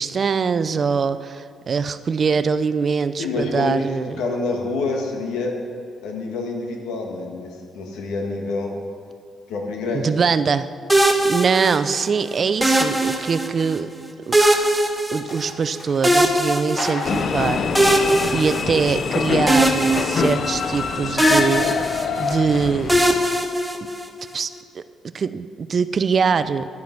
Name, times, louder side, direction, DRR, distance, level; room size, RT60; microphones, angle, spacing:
voice 1, 0.0-4.2 9.9-10.7 10.9-13.9 14.3-14.4 15.1-18.1 18.3-21.7 22.2-23.0 24.3-24.8 25.1-26.7, right 5 dB, 45° right, 13 dB, 0.5 m, -23 dB
voice 2, 3.2-3.9 4.2-5.5 6.0-8.7 9.5-10.1, left 3 dB, 90° left, 1 dB, 1.8 m, -27 dB
sound 1, 10.9-12.1 12.6-13.7 14.3-15.7 16.0-17.2 17.7-19.1 19.5-20.9 21.2-22.4 22.9-24.3, right 1 dB, 5° right, 1.2 m, -20 dB
sound 2, 11.6-13.1 14.4-14.6 15.2-16.1 16.7-17.3 18.0-18.1 18.5-21.5, left 1 dB, 35° left, 3.5 m, -38 dB
sound 3, 17.0-23.4, left 6 dB, 55° left, 0.5 m, -25 dB
11.0 x 9.5 x 6.0 m, 2.1 s
cardioid pair, 90°, 0 cm